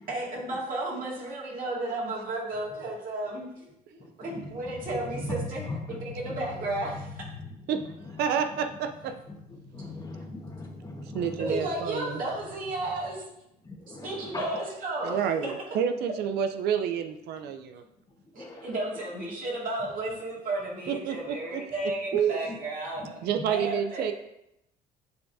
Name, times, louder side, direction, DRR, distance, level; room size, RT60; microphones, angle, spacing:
voice 1, 0.1-5.7 6.0-7.2 11.4-13.3 13.9-15.2 15.4-15.5 18.3-24.1, right 2 dB, 55° right, -4 dB, 2.1 m, -33 dB
voice 2, 8.2-9.1 11.1-12.2 15.0-17.8 20.9-21.6 22.1-22.4 23.2-24.1, right 8 dB, 75° right, 8 dB, 0.5 m, -29 dB
voice 3, 9.7-11.3 13.6-14.4 18.4-18.7, left 3 dB, 20° left, 1 dB, 1.3 m, -39 dB
10.5 x 3.5 x 2.6 m, 0.82 s
cardioid pair, 110°, 17 cm